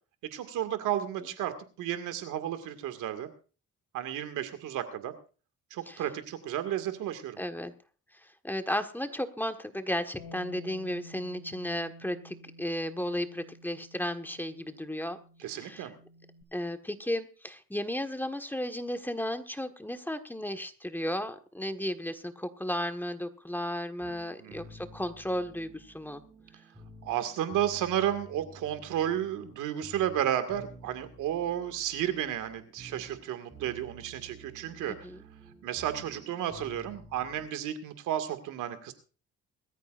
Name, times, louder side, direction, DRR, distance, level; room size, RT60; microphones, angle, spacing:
voice 1, 0.3-3.3 3.9-5.1 5.7-7.4 15.4-15.9 24.4-24.7 27.0-34.9 35.6-38.9, right 11 dB, 90° right, 8 dB, 2.1 m, -32 dB
voice 2, 7.4-7.7 8.1-15.9 16.5-26.2 34.9-35.2, left 1 dB, 5° left, 7 dB, 1.5 m, -34 dB
Bass guitar, 10.2-16.4, equal, 90° left, 2.9 m, -51 dB
sound 1, 24.0-37.5, right 1 dB, 10° right, 7.1 m, -52 dB
21.5 x 14.0 x 2.5 m, 0.36 s
cardioid pair, 90°, 30 cm